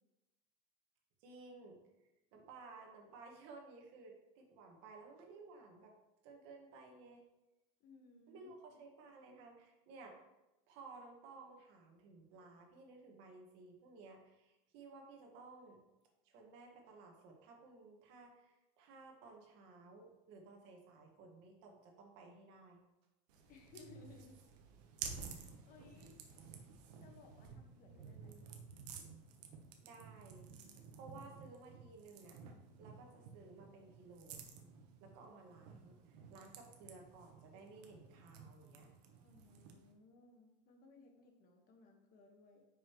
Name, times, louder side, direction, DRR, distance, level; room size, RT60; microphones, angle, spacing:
voice 1, 1.2-1.8 2.3-5.9 6.2-7.2 8.3-10.2 10.7-15.8 16.2-22.8 27.9-28.5 29.8-30.5 30.9-32.4 32.8-34.5 35.0-38.9, right 3 dB, 60° right, 1 dB, 1.8 m, -57 dB
voice 2, 7.8-8.5 23.5-24.4 25.3-26.1 27.0-28.6 30.5-30.9 39.2-42.6, left 4 dB, 45° left, 3 dB, 1.6 m, -62 dB
sound 1, 23.3-39.9, right 6 dB, 85° right, 1.2 m, -53 dB
9.1 x 5.9 x 3.2 m, 0.98 s
supercardioid pair, 140°, 20 cm